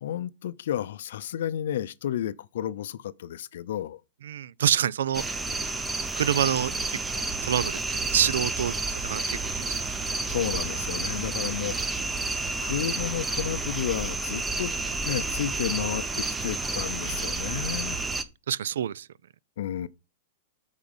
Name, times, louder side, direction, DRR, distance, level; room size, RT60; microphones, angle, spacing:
voice 1, 0.0-4.0 10.3-12.0 12.6-14.7 15.1-18.0 19.6-19.9, left 11 dB, 70° left, 0.5 m, -32 dB
voice 2, 4.2-5.2 6.2-7.0 7.4-7.8 8.1-9.8 11.1-11.2 17.0-17.3 18.5-19.0, right 9 dB, 90° right, 0.4 m, -27 dB
sound 1, 5.1-18.2, right 3 dB, 10° right, 0.6 m, -30 dB
8.9 x 4.1 x 5.3 m
supercardioid pair, 160°, 0 cm